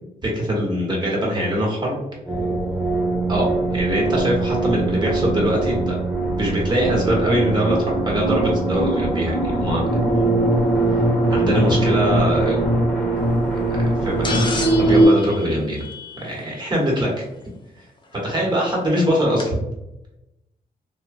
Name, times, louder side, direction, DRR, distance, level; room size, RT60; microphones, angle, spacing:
voice 1, 0.2-2.0 3.3-3.5 3.7-6.0 6.4-7.8 8.0-9.8 10.9-11.0 11.3-12.6 13.5-15.9 16.2-17.2 18.2-19.5, equal, 25° right, -3 dB, 1.1 m, -22 dB
sound 1, 2.3-15.1, right 2 dB, 5° left, 0.9 m, -21 dB
sound 2, 14.2-16.6 18.1-18.2 19.4-19.5, left 4 dB, 30° left, 0.5 m, -31 dB
3.1 x 2.1 x 2.5 m, 0.93 s
cardioid pair, 85°, 16 cm